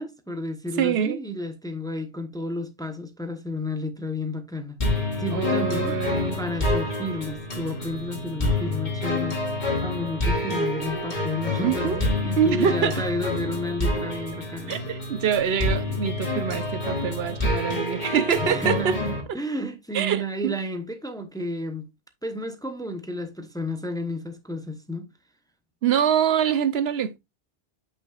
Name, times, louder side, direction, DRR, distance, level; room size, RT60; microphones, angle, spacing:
voice 1, 0.0-6.0 6.4-9.4 9.8-14.7 18.4-21.9 22.2-25.1, left 1 dB, 5° left, 0.8 m, -32 dB
voice 2, 0.8-1.2 5.3-6.4 11.6-12.0 12.4-13.0 14.7-19.0 19.9-20.5 25.8-27.2, right 8 dB, 75° right, 0.9 m, -25 dB
sound 1, 4.8-19.2, left 2 dB, 45° left, 2.2 m, -27 dB
8.3 x 6.0 x 2.4 m
omnidirectional pair, 1.1 m